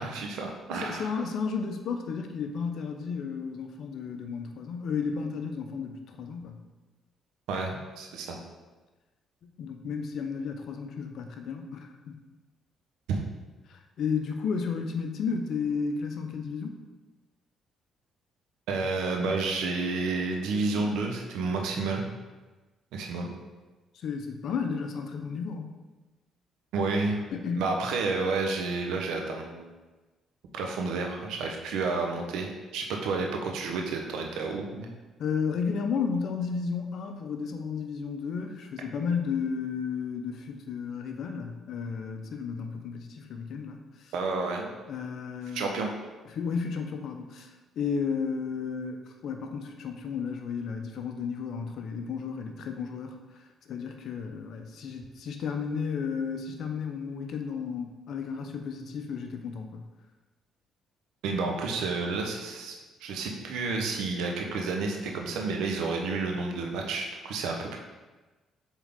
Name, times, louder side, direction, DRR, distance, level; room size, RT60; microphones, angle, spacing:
voice 1, 0.0-1.1 7.5-8.4 13.1-13.2 18.7-22.1 22.9-23.3 26.7-27.2 27.6-29.7 30.5-34.9 44.1-44.7 45.5-45.9 61.2-62.7 63.0-67.8, right 3 dB, 85° right, 1 dB, 0.9 m, -30 dB
voice 2, 0.7-6.6 9.4-12.2 13.7-16.8 20.7-20.9 23.9-25.7 27.3-27.7 35.2-44.1 44.9-45.7 46.3-53.2 53.7-59.8, left 5 dB, 65° left, 5 dB, 0.7 m, -33 dB
7.1 x 3.7 x 3.6 m, 1.2 s
cardioid pair, 80°, 0 cm